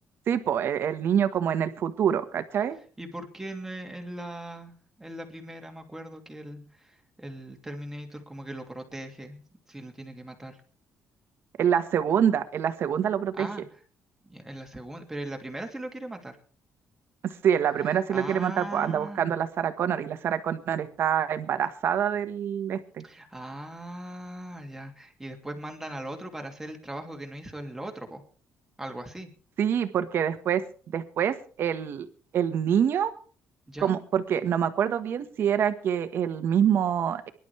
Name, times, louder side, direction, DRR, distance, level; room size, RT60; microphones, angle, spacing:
voice 1, 0.3-2.8 11.6-13.5 17.2-23.0 29.6-30.6 30.9-32.1 32.3-33.1 33.8-37.3, right 8 dB, 55° right, 9 dB, 1.5 m, -26 dB
voice 2, 3.0-10.6 13.4-13.8 14.2-16.4 17.8-19.3 23.0-28.2 28.8-29.3 33.7-34.0, right 1 dB, 10° right, 3 dB, 2.7 m, -39 dB
24.0 x 11.5 x 3.4 m, 0.43 s
cardioid pair, 135°, 5 cm